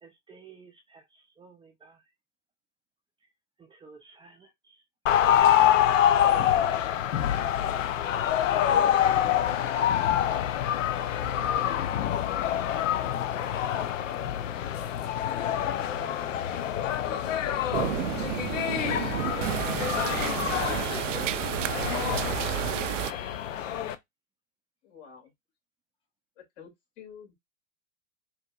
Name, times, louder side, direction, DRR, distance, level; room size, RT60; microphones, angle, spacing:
voice 1, 0.0-2.0 3.6-4.8 5.9-6.8 13.5-14.0 18.5-18.6, right 4 dB, 15° right, 0.5 m, -52 dB
sound 1, 5.1-24.0, left 10 dB, 80° left, 0.6 m, -26 dB
voice 2, 16.2-17.8 18.1-19.2 19.5-19.6 20.6-22.9, left 4 dB, 15° left, 1.2 m, -43 dB
sound 2, 17.7-23.1, right 14 dB, 75° right, 0.5 m, -31 dB
voice 3, 24.8-25.3 26.4-27.3, left 7 dB, 60° left, 2.5 m, -49 dB
4.9 x 2.9 x 2.3 m
hypercardioid pair, 105°, 37 cm